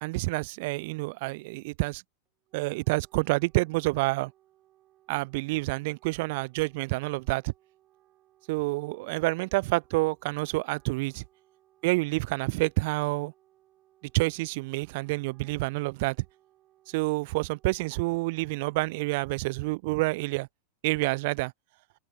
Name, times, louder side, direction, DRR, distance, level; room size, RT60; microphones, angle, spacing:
voice 1, 0.0-2.0 2.5-4.3 5.1-7.5 8.5-11.2 11.8-13.3 14.1-16.2 16.9-20.5 20.8-21.5, right 24 dB, 50° right, 0.3 m, -28 dB
Wind instrument woodwind instrument, 2.3-19.7, right 14 dB, 35° right, 6.4 m, -65 dB
figure-of-eight pair, 90°, 0 cm